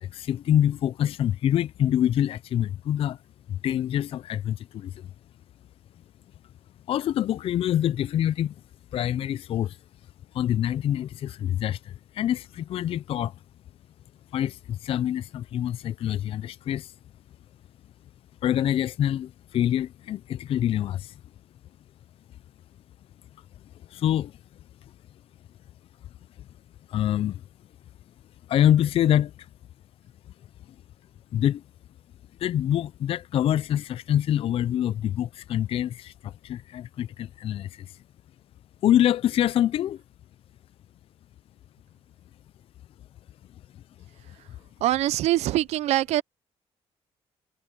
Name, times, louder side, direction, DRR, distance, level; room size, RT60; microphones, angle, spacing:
voice 1, 0.0-3.2 3.5-5.1 6.9-8.5 8.9-9.8 10.3-13.4 14.3-16.9 18.4-21.2 23.9-24.4 26.4-26.5 26.9-27.4 28.5-29.5 30.7-30.8 31.3-31.6 32.4-38.0 38.8-40.0, left 11 dB, 55° left, 0.4 m, -25 dB
voice 2, 44.8-46.2, right 15 dB, 80° right, 0.5 m, -23 dB
cardioid pair, 110°, 11 cm